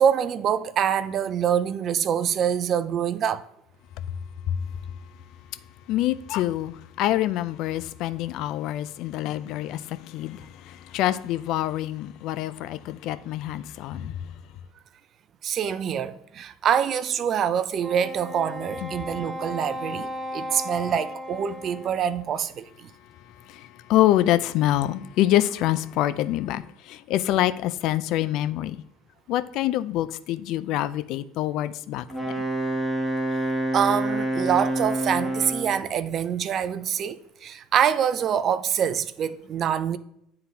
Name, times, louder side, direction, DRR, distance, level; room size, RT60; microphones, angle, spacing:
voice 1, 0.0-3.4 15.4-22.9 33.7-40.0, right 8 dB, 50° right, 0.4 m, -25 dB
voice 2, 5.9-14.2 18.8-18.9 23.5-28.8 29.3-32.0, left 14 dB, 65° left, 0.4 m, -26 dB
Wind instrument woodwind instrument, 17.8-22.4, left 1 dB, 15° right, 1.0 m, -35 dB
Wind instrument woodwind instrument 2, 32.1-35.8, right 1 dB, 5° left, 1.4 m, -27 dB
9.7 x 3.8 x 2.7 m
hypercardioid pair, 80°, 0 cm